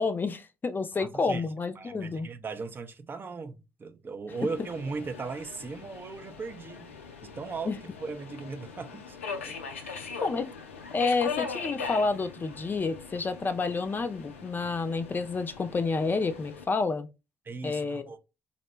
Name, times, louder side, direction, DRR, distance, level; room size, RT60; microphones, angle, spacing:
voice 1, 0.0-2.3 7.6-7.8 9.9-10.5 10.9-17.1 17.6-18.1, left 4 dB, 30° left, 0.5 m, -29 dB
voice 2, 1.0-1.4 1.8-6.9 7.2-7.8 8.0-9.2 9.5-10.2 17.5-18.2, right 4 dB, 30° right, 0.5 m, -38 dB
Subway metro underground, 4.3-16.7, left 5 dB, 85° left, 0.3 m, -40 dB
4.1 x 2.1 x 3.0 m
figure-of-eight pair, 50°, 7 cm